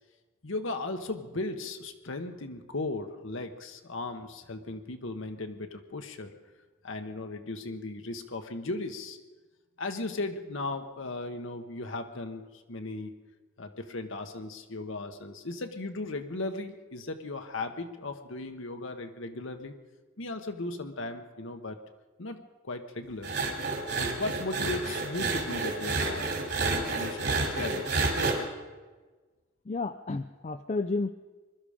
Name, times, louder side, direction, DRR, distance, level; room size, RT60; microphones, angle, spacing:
voice 1, 0.4-6.3 6.8-9.2 9.8-13.2 13.6-19.7 20.2-21.8 22.2-23.3 24.0-26.3 26.6-28.1, left 2 dB, 65° left, 6 dB, 1.0 m, -37 dB
sound 1, 23.2-28.4, right 3 dB, 50° right, 2.8 m, -30 dB
voice 2, 29.7-31.1, left 3 dB, 30° left, 9 dB, 0.4 m, -31 dB
22.0 x 12.5 x 5.0 m, 1.3 s
head